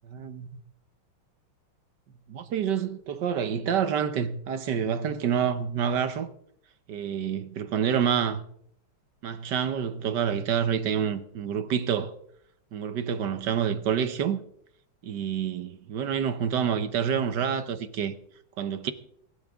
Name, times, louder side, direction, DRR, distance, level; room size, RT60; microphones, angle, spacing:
voice 1, 0.1-0.6 2.3-6.3 6.9-8.4 9.2-12.1 12.7-14.4 15.0-18.1 18.6-18.9, right 8 dB, 60° right, 1.3 m, -28 dB
22.5 x 12.5 x 3.6 m
omnidirectional pair, 2.4 m